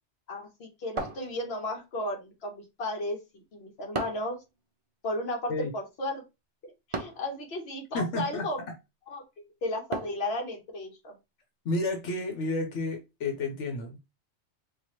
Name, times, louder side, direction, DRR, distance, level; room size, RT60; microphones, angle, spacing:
voice 1, 0.3-3.2 3.5-4.4 5.0-6.2 6.6-8.6 9.1-9.2 9.6-11.1, left 1 dB, 60° left, 1.3 m, -34 dB
sound 1, 1.0-1.8 3.9-4.4 6.9-7.3 9.9-10.3, right 3 dB, 35° right, 0.5 m, -35 dB
voice 2, 7.9-8.5 11.6-14.0, left 2 dB, 85° left, 1.2 m, -31 dB
4.6 x 2.6 x 2.9 m
omnidirectional pair, 1.2 m